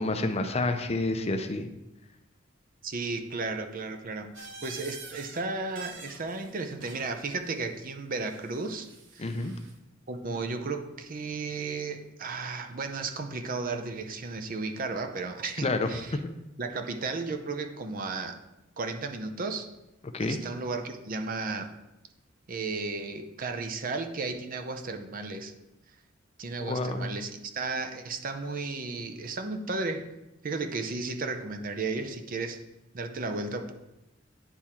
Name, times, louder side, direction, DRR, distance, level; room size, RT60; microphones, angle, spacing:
voice 1, 0.0-1.7 9.2-9.5 15.6-16.3 20.1-20.4 26.6-27.1, left 2 dB, 30° left, 7 dB, 0.5 m, -29 dB
voice 2, 2.8-4.3 4.6-8.9 9.1-9.3 10.1-16.2 16.6-18.4 18.8-19.7 20.2-21.7 22.5-25.5 26.4-30.1 30.4-32.6 32.9-33.7, right 3 dB, 45° right, 6 dB, 0.6 m, -34 dB
sound 1, 4.3-5.4 5.7-7.2 8.2-9.7, right 4 dB, 70° right, 1.2 m, -47 dB
9.8 x 3.6 x 4.3 m, 0.95 s
head